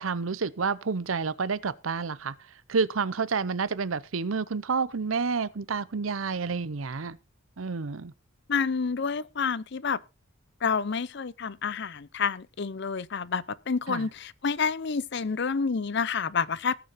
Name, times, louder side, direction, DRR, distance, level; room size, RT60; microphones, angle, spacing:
voice 1, 0.0-2.3 2.7-7.2 7.6-8.1 13.9-14.1, right 5 dB, 90° right, 0.7 m, -29 dB
voice 2, 8.5-10.0 10.6-16.8, left 5 dB, 60° left, 0.6 m, -29 dB
18.5 x 6.9 x 4.1 m
head